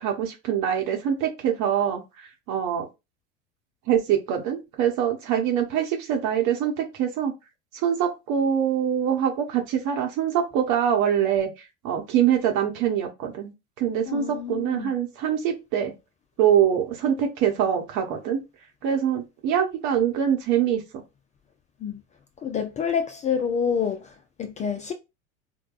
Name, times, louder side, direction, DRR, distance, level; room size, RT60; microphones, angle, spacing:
voice 1, 0.0-2.9 3.9-7.3 7.7-11.5 11.8-13.5 13.8-15.9 16.4-18.4 18.8-20.8, right 9 dB, 50° right, 0.9 m, -24 dB
voice 2, 14.1-14.9 21.8-22.0 22.4-24.9, left 7 dB, 20° left, 0.3 m, -28 dB
4.5 x 2.2 x 2.4 m
hypercardioid pair, 85°, 39 cm